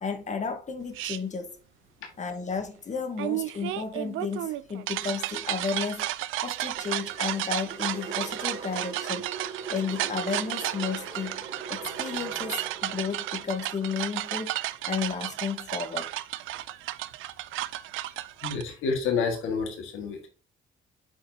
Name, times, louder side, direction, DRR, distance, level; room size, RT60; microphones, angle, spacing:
voice 1, 0.0-1.6 2.2-6.0 6.4-9.2 9.7-11.4 11.7-14.5 14.9-16.1, left 5 dB, 35° left, 1.4 m, -33 dB
sound 1, 0.9-1.2 3.2-18.6, right 15 dB, 85° right, 0.5 m, -33 dB
sound 2, 6.8-15.0, right 5 dB, 50° right, 3.0 m, -42 dB
voice 2, 18.4-20.3, left 5 dB, 85° left, 1.8 m, -29 dB
8.3 x 4.8 x 2.8 m
cardioid pair, 90°, 20 cm